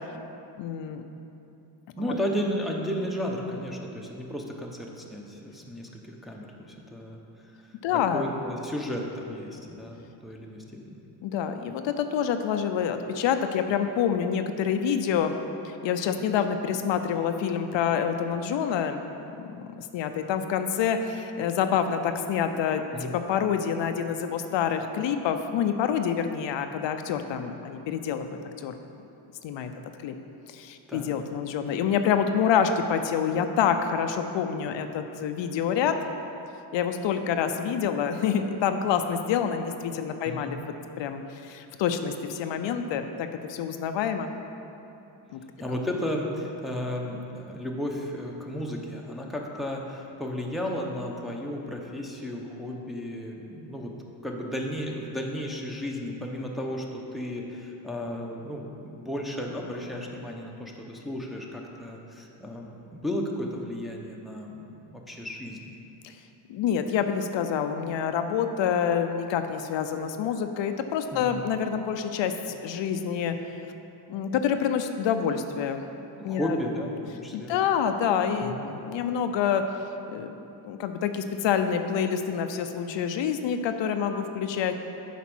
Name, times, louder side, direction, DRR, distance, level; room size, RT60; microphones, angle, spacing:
voice 1, 0.6-1.0 2.1-2.2 7.8-8.3 11.2-15.3 15.6-19.0 19.4-28.7 29.4-29.7 30.0-30.1 30.5-35.9 36.7-40.6 41.0-44.4 45.3-45.4 66.0-66.2 66.5-73.4 74.1-75.8 76.2-76.6 77.3-79.6 80.1-80.3 80.6-84.7, left 7 dB, 75° left, 7 dB, 0.6 m, -27 dB
voice 2, 2.0-7.2 7.6-11.0 22.9-23.2 30.9-31.1 40.2-40.6 45.6-53.9 54.2-65.7 71.1-71.4 76.2-77.7 78.4-78.7, equal, ahead, -1 dB, 0.8 m, -34 dB
8.2 x 5.1 x 6.1 m, 2.8 s
cardioid pair, 130°, 45 cm